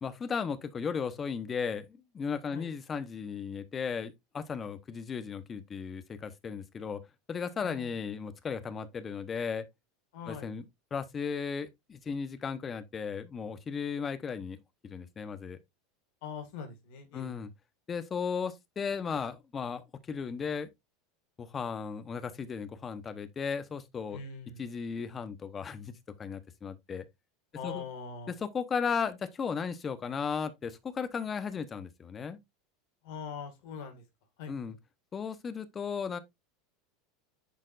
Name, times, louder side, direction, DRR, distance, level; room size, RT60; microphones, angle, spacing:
voice 1, 0.0-7.0 7.3-9.7 10.3-10.6 10.9-14.6 14.8-15.6 17.1-17.5 17.9-20.7 21.4-24.2 24.6-27.1 27.6-27.8 28.4-32.4 34.5-34.8 35.1-36.2, left 6 dB, 25° left, 0.9 m, -35 dB
voice 2, 7.6-8.0 10.1-10.5 16.2-17.3 24.1-24.7 27.5-28.4 33.0-34.0 34.4-34.5, left 6 dB, 70° left, 2.1 m, -42 dB
10.5 x 4.5 x 2.5 m
supercardioid pair, 120°, 0 cm